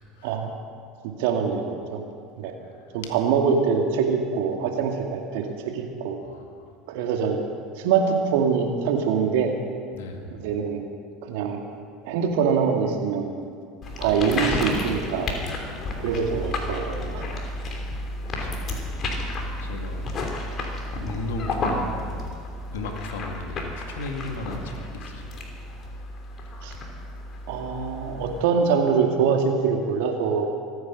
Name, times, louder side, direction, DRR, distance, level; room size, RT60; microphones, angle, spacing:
voice 1, 0.2-0.5 2.6-3.1 6.2-6.7 9.9-10.4 15.7-16.6 18.3-18.6 19.0-19.2 19.6-20.1 21.0-22.4 22.7-25.5 26.4-26.5 27.1-27.2 27.8-27.9, left 2 dB, 75° left, 4 dB, 2.0 m, -37 dB
voice 2, 1.0-2.0 2.4-2.6 2.9-5.5 5.7-6.2 6.9-7.4 7.8-9.5 10.4-10.8 11.2-11.6 12.0-13.3 14.0-15.3 16.0-17.2 26.6-26.7 27.5-30.5, right 6 dB, 70° right, 3 dB, 2.1 m, -24 dB
sound 1, 13.8-28.4, left 2 dB, 45° left, 3.1 m, -32 dB
24.5 x 9.5 x 6.1 m, 2.3 s
hypercardioid pair, 75°, 0 cm